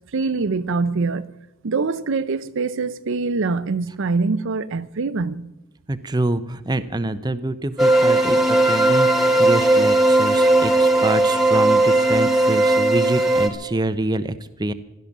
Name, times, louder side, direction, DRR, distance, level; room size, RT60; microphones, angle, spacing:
voice 1, 0.1-1.3 1.6-5.5, right 4 dB, 60° right, 0.6 m, -24 dB
voice 2, 5.9-14.7, right 1 dB, 20° right, 0.6 m, -26 dB
sound 1, 7.8-13.5, right 2 dB, ahead, 1.6 m, -17 dB
16.0 x 12.0 x 7.2 m
head